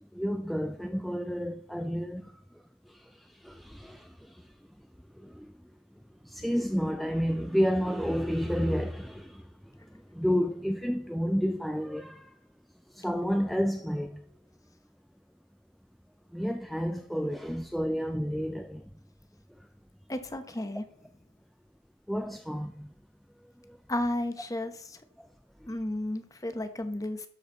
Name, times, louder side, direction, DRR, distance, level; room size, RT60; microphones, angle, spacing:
voice 1, 0.1-2.3 2.9-4.5 5.2-5.5 6.2-9.5 9.9-12.3 12.9-14.2 16.3-18.8 22.1-22.9 23.6-23.8, equal, ahead, 0.3 m, -30 dB
voice 2, 20.1-20.8 23.9-25.0 25.7-27.3, left 1 dB, 20° left, 0.8 m, -33 dB
12.5 x 6.4 x 3.8 m
head